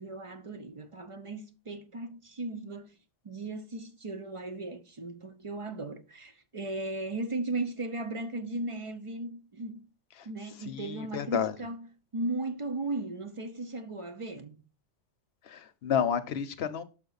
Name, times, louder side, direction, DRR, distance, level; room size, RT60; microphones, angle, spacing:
voice 1, 0.0-3.0 3.2-9.9 10.3-11.9 12.1-14.6, right 2 dB, 45° right, 0.4 m, -36 dB
voice 2, 10.7-11.5 15.5-16.8, left 8 dB, 65° left, 0.9 m, -30 dB
6.0 x 5.8 x 3.9 m
omnidirectional pair, 1.2 m